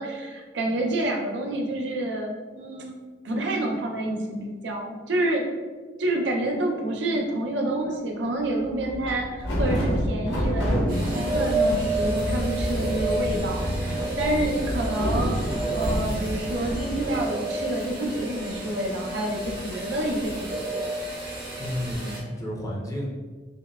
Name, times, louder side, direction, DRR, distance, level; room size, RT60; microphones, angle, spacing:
voice 1, 0.0-2.9 3.2-5.5 6.0-20.9, right 1 dB, 75° right, 1 dB, 0.6 m, -28 dB
sound 1, 7.1-7.3 8.6-17.2 17.5-17.6 17.8-21.1 21.6-21.9, equal, 85° left, 1.0 m, -29 dB
sound 2, 10.9-22.2, right 1 dB, 50° right, 1.0 m, -30 dB
voice 2, 21.6-23.1, equal, 20° left, -3 dB, 0.5 m, -31 dB
5.3 x 2.2 x 2.3 m, 1.4 s
head